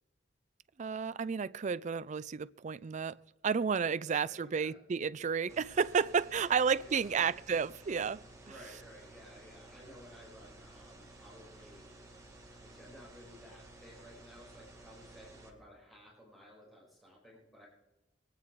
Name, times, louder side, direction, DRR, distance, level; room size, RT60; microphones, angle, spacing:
voice 1, 0.8-3.2 3.4-8.2, right 6 dB, 40° right, 0.4 m, -31 dB
voice 2, 4.0-4.8 6.3-7.3 8.4-11.8 12.2-17.7, equal, ahead, 5.4 m, -55 dB
sound 1, 5.5-15.5, right 2 dB, 20° right, 2.2 m, -54 dB
23.0 x 9.5 x 4.6 m
head